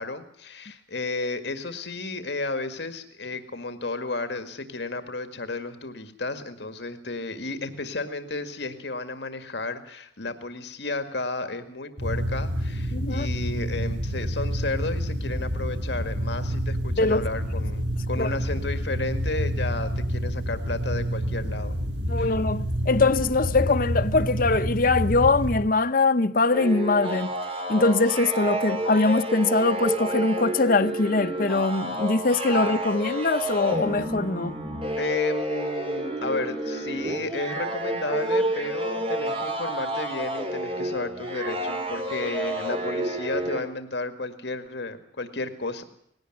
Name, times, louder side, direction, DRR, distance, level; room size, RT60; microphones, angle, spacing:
voice 1, 0.0-21.8 22.2-22.4 32.5-32.6 35.0-45.8, left 3 dB, 70° left, 1.9 m, -32 dB
sound 1, 12.0-25.7, equal, 85° right, 4.6 m, -28 dB
voice 2, 12.9-13.3 17.0-17.2 18.2-18.3 22.1-27.3 27.7-34.6, left 3 dB, 50° left, 0.8 m, -22 dB
sound 2, 26.5-43.6, right 1 dB, 30° right, 3.1 m, -30 dB
19.5 x 17.0 x 7.8 m
head